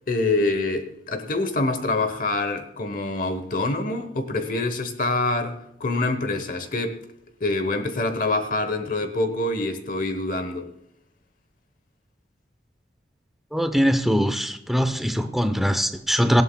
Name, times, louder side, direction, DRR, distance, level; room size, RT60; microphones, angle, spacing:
voice 1, 0.1-7.0 7.4-10.7, left 2 dB, 50° left, 8 dB, 1.0 m, -25 dB
voice 2, 13.5-16.4, equal, ahead, 8 dB, 0.8 m, -22 dB
18.0 x 16.0 x 2.3 m, 0.78 s
head